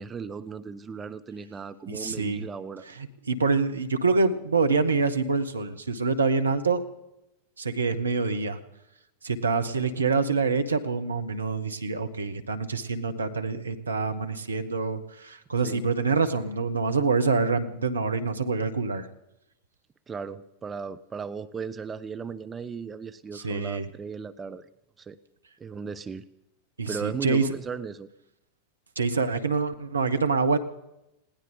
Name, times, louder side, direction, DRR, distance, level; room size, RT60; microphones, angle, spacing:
voice 1, 0.0-2.9 15.6-15.8 20.1-24.7 25.0-25.2 25.6-26.3 26.9-28.1, right 5 dB, 20° right, 11 dB, 0.7 m, -36 dB
voice 2, 1.9-2.5 3.0-6.8 7.6-8.6 9.2-19.1 23.3-23.9 26.8-27.4 29.0-30.6, right 4 dB, 75° right, 8 dB, 1.3 m, -26 dB
20.5 x 17.5 x 3.9 m, 0.86 s
figure-of-eight pair, 90°, 0 cm